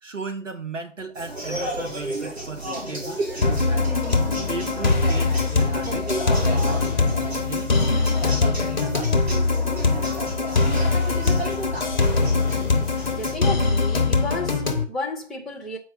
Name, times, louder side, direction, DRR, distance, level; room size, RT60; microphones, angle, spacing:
voice 1, 0.0-4.0 4.5-6.1 6.5-7.8, right 4 dB, 80° right, 1.4 m, -35 dB
sound 1, 1.1-13.4, right 1 dB, 55° right, 3.4 m, -32 dB
sound 2, 3.4-14.8, left 4 dB, 40° left, 0.8 m, -22 dB
voice 2, 13.0-15.8, left 2 dB, ahead, 0.4 m, -32 dB
7.5 x 4.6 x 4.0 m
figure-of-eight pair, 160°, 37 cm